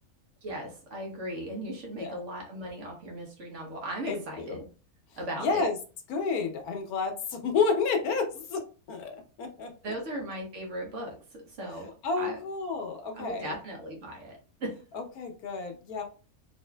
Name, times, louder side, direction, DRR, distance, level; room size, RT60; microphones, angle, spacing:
voice 1, 0.4-4.6 5.2-5.6 9.8-12.4 13.1-14.8, right 1 dB, 60° right, 0 dB, 1.3 m, -37 dB
voice 2, 4.1-4.6 5.4-5.8 6.1-8.6 8.9-9.7 12.0-13.6 14.9-16.0, left 4 dB, 90° left, 5 dB, 1.3 m, -30 dB
4.0 x 2.7 x 2.2 m, 0.36 s
omnidirectional pair, 1.5 m